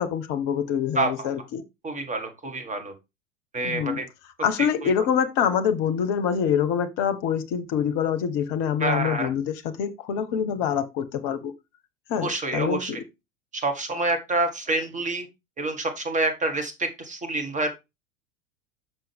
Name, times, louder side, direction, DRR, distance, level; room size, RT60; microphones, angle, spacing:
voice 1, 0.0-1.6 3.6-4.0 4.4-11.5 12.1-13.0, left 8 dB, 45° left, 1.0 m, -25 dB
voice 2, 0.9-1.3 1.8-2.9 3.5-4.1 4.8-4.9 8.8-9.3 12.2-12.9 13.5-15.3 15.6-17.7, right 2 dB, 20° right, 1.8 m, -27 dB
6.1 x 5.9 x 3.5 m
figure-of-eight pair, 80°, 38 cm